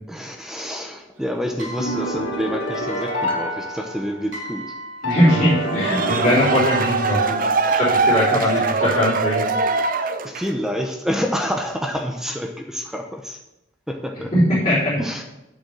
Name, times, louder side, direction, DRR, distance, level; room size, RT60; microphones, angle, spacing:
voice 1, 0.1-4.7 8.3-8.4 10.2-13.4 13.9-14.3 15.0-15.2, equal, 5° right, 3 dB, 0.7 m, -28 dB
sound 1, 1.2-7.2, left 2 dB, 75° right, 2.4 m, -36 dB
sound 2, 1.8-4.4 5.0-7.5, equal, 80° left, 2.3 m, -28 dB
voice 2, 5.0-7.4 7.7-9.5 14.3-15.0, equal, 30° left, -12 dB, 3.8 m, -20 dB
sound 3, 5.6-10.6, right 4 dB, 45° right, 0.6 m, -22 dB
7.8 x 7.1 x 6.6 m, 0.95 s
head